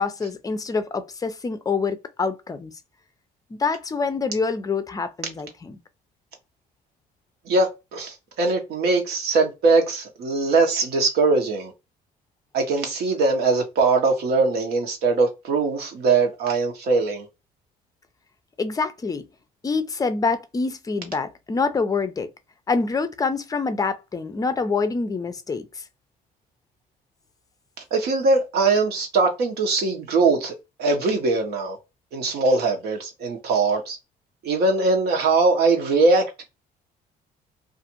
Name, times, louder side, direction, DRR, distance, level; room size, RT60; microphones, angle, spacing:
voice 1, 0.0-2.7 3.5-5.8 18.6-19.2 19.6-22.3 22.7-25.8, left 4 dB, 20° left, 0.5 m, -26 dB
voice 2, 7.5-11.7 12.5-17.3 27.9-31.8 32.1-34.0 34.4-36.3, right 3 dB, 70° right, 1.0 m, -21 dB
2.5 x 2.4 x 2.8 m
cardioid pair, 110°, 17 cm